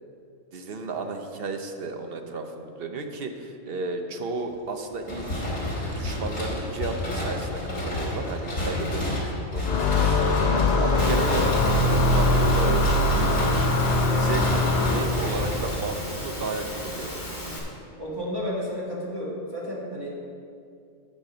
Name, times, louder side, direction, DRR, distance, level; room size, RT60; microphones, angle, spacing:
voice 1, 0.5-5.5 5.8-9.7 10.0-10.4 10.8-11.5 11.9-13.1 14.1-17.1, right 3 dB, 50° right, 5 dB, 0.9 m, -33 dB
sound 1, 5.0-16.2, left 1 dB, 70° left, 2.7 m, -29 dB
sound 2, 9.6-15.4, left 2 dB, 45° left, 0.5 m, -22 dB
Engine / Mechanisms, 11.0-17.6, equal, 15° left, 1.6 m, -36 dB
voice 2, 18.0-20.2, equal, 20° right, -5 dB, 1.9 m, -32 dB
8.3 x 6.2 x 6.1 m, 2.4 s
omnidirectional pair, 1.4 m